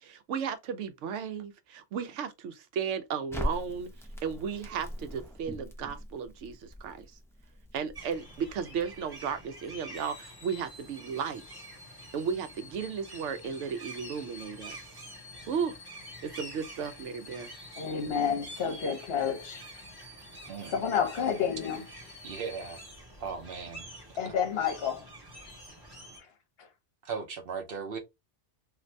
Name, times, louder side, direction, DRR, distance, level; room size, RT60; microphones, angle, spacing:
voice 1, 0.0-3.9 4.2-7.2 7.7-11.6 12.1-14.8 15.5-15.8 16.2-17.5, right 6 dB, 80° right, 0.9 m, -35 dB
Crackle, 3.3-9.4, equal, 5° left, 0.3 m, -41 dB
sound 1, 8.0-26.2, right 1 dB, 20° right, 0.9 m, -48 dB
sound 2, 9.9-23.6 24.1-24.2, left 4 dB, 20° left, 0.8 m, -52 dB
voice 2, 17.8-19.6 20.7-21.8 24.2-25.1 26.2-26.3 26.6-26.7, left 7 dB, 60° left, 0.9 m, -30 dB
voice 3, 22.2-22.8 23.2-23.9 24.2-24.3 27.0-28.0, right 5 dB, 55° right, 0.9 m, -37 dB
2.6 x 2.5 x 3.2 m
omnidirectional pair, 1.2 m